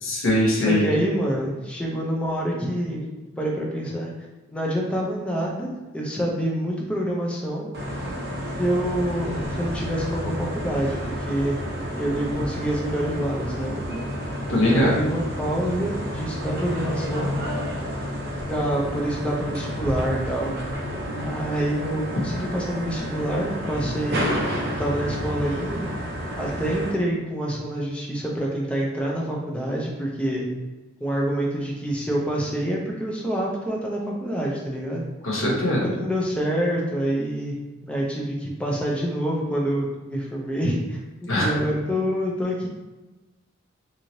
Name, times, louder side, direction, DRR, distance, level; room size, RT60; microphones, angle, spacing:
voice 1, 0.0-0.8 14.5-14.9 35.2-35.9 41.3-41.5, left 1 dB, 70° left, -3 dB, 0.9 m, -21 dB
voice 2, 0.7-3.0 3.4-4.1 4.5-5.7 5.9-7.7 8.6-11.6 12.0-13.8 14.5-17.4 18.5-20.5 21.2-24.4 24.8-25.9 26.4-30.5 31.0-35.0 35.8-37.6 37.9-41.0 41.4-42.7, right 1 dB, 5° left, -3 dB, 0.5 m, -26 dB
sound 1, 7.7-26.9, equal, 50° right, 0.5 m, -30 dB
3.0 x 2.7 x 2.7 m, 1.1 s
head